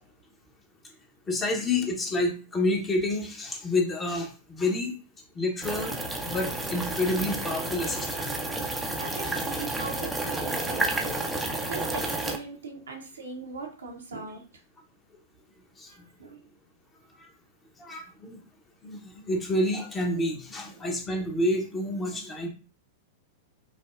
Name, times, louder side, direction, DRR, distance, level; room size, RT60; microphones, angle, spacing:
voice 1, 1.3-4.9 5.4-6.0 6.2-8.3 15.8-15.9 17.2-17.3 17.8-18.4 18.8-22.5, left 2 dB, 20° left, 2 dB, 0.9 m, -29 dB
sound 1, 5.6-12.4, right 2 dB, 5° right, 0.5 m, -31 dB
voice 2, 8.8-11.2 11.6-14.6 15.9-16.5 20.7-20.9, right 4 dB, 80° right, 2 dB, 0.9 m, -40 dB
5.1 x 2.0 x 2.4 m, 0.36 s
figure-of-eight pair, 100°, 0 cm